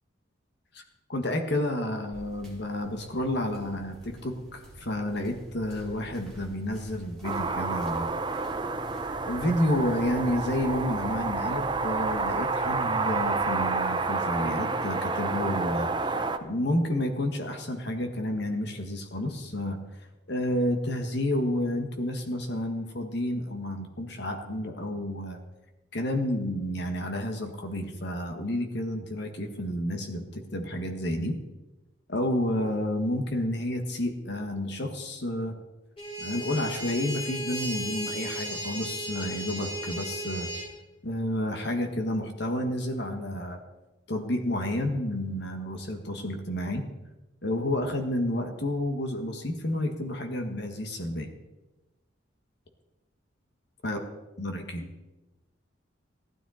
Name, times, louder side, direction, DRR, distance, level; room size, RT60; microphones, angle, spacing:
voice 1, 1.1-8.1 9.0-19.8 20.3-25.4 25.9-31.4 32.1-35.6 36.2-40.5 41.0-43.6 44.1-46.9 47.4-51.3 53.8-54.0 54.4-54.8, left 1 dB, 55° left, 5 dB, 1.7 m, -30 dB
sound 1, 2.1-13.7, equal, 5° left, 2.5 m, -47 dB
sound 2, 7.2-16.4, right 3 dB, 25° right, 0.7 m, -29 dB
sound 3, 36.0-40.7, right 1 dB, 30° left, 5.9 m, -35 dB
15.5 x 12.5 x 4.3 m, 1.1 s
head